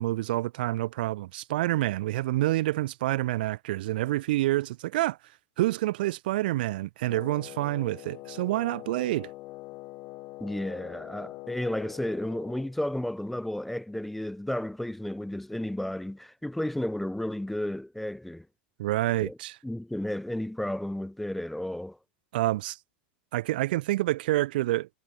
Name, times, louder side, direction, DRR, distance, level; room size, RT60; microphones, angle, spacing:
voice 1, 0.0-5.2 5.6-9.3 18.8-19.6 22.3-22.8 23.3-24.9, right 16 dB, 65° right, 0.4 m, -27 dB
Wind instrument woodwind instrument, 7.0-12.7, left 20 dB, 40° left, 5.8 m, -44 dB
voice 2, 10.4-18.5 19.2-19.4 19.6-22.0, left 1 dB, ahead, 0.3 m, -32 dB
supercardioid pair, 150°, 5 cm